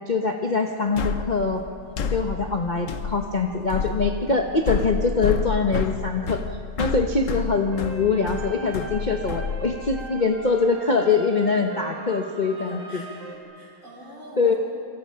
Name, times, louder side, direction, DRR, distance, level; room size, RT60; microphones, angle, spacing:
voice 1, 0.1-1.7 2.1-6.4 6.8-13.0 14.4-14.5, left 4 dB, 30° left, 2 dB, 1.0 m, -23 dB
sound 1, 1.0-10.1, left 6 dB, 55° left, 1.1 m, -29 dB
sound 2, 7.7-13.4, right 3 dB, 70° right, 3.1 m, -40 dB
voice 2, 12.5-14.6, right 1 dB, 45° right, -4 dB, 8.0 m, -43 dB
27.0 x 26.0 x 5.8 m, 2.6 s
omnidirectional pair, 1.9 m